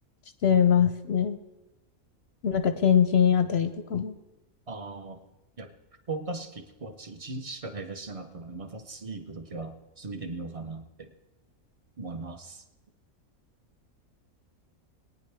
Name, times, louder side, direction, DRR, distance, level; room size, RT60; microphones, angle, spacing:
voice 1, 0.4-1.4 2.4-4.1, left 8 dB, 60° left, 9 dB, 0.7 m, -22 dB
voice 2, 4.7-5.2 5.6-5.7 6.1-11.1 12.0-12.6, right 3 dB, 30° right, 7 dB, 0.7 m, -38 dB
21.5 x 9.5 x 3.4 m, 1.0 s
omnidirectional pair, 1.5 m